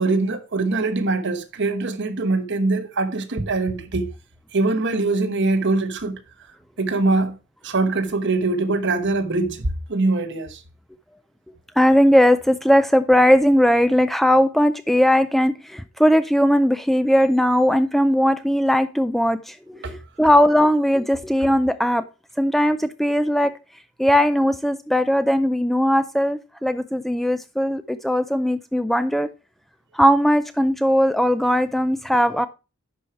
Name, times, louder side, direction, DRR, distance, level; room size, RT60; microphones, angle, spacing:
voice 1, 0.0-4.1 4.5-6.2 6.8-7.4 7.6-10.6 19.8-19.9, right 3 dB, 55° right, 1.1 m, -23 dB
voice 2, 11.8-22.1 22.4-23.6 24.0-29.3 29.9-32.5, equal, ahead, 0.3 m, -19 dB
11.0 x 4.8 x 4.4 m
head